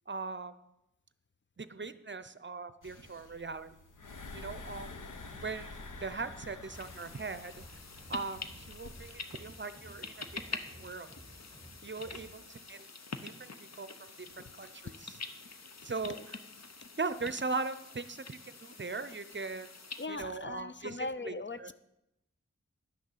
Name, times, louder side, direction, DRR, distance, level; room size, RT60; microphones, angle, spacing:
voice 1, 0.1-0.5 1.6-3.7 4.3-4.9 5.3-7.6 8.1-10.1 10.5-11.1 11.8-12.9 13.2-14.9 15.8-16.2 17.0-19.7 20.1-21.7, right 4 dB, 40° right, 13 dB, 0.6 m, -39 dB
sound 1, 2.8-9.1, left 3 dB, 90° left, 0.9 m, -49 dB
sound 2, 5.3-12.4, equal, 10° left, 2.0 m, -55 dB
sound 3, 6.7-20.1, left 4 dB, 60° left, 0.9 m, -46 dB
voice 2, 15.9-16.3 20.0-21.7, left 3 dB, 40° left, 12 dB, 0.5 m, -40 dB
11.0 x 6.4 x 7.3 m, 0.87 s
wide cardioid pair, 60°, 30 cm